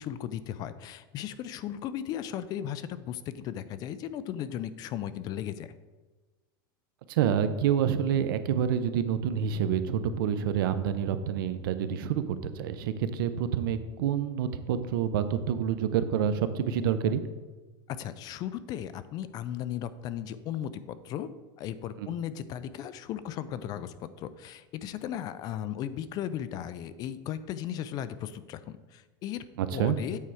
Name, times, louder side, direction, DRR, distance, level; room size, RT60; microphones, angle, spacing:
voice 1, 0.0-5.7 17.9-21.3 21.6-29.4 29.7-30.2, left 10 dB, 35° left, 14 dB, 0.4 m, -36 dB
voice 2, 7.1-17.2 22.0-22.1 29.6-30.0, right 8 dB, 75° right, 11 dB, 0.6 m, -28 dB
8.4 x 4.4 x 4.9 m, 1.3 s
supercardioid pair, 150°, 12 cm